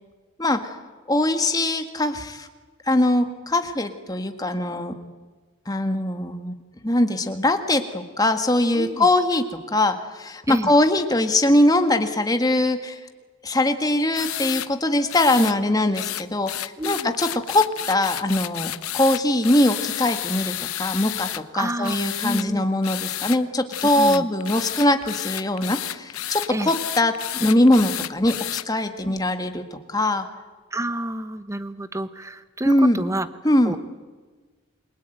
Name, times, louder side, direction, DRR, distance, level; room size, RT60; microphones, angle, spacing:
voice 1, 1.1-2.5 2.9-5.0 5.7-6.5 6.8-13.0 13.4-30.3 32.7-33.0 33.4-33.7, left 1 dB, 15° left, 7 dB, 1.7 m, -22 dB
voice 2, 8.7-9.1 10.5-10.7 16.8-17.1 21.5-22.6 23.9-24.2 26.5-26.7 29.0-29.2 30.7-33.3 33.6-33.8, right 1 dB, 15° right, 12 dB, 1.1 m, -29 dB
sound 1, 14.1-14.7 15.1-15.6 15.9-21.4 21.8-22.5 22.8-23.4 23.7-28.6, left 13 dB, 90° left, 0.9 m, -31 dB
28.0 x 22.5 x 9.1 m, 1.4 s
head